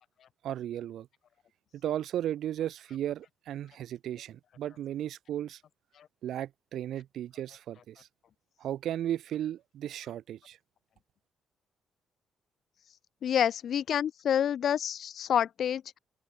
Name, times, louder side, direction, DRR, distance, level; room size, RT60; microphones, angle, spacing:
voice 1, 0.4-1.1 1.7-5.6 6.2-8.1 8.6-10.6, right 11 dB, 75° right, 3.8 m, -35 dB
voice 2, 13.2-16.0, left 9 dB, 65° left, 0.8 m, -28 dB
cardioid pair, 90°, 0 cm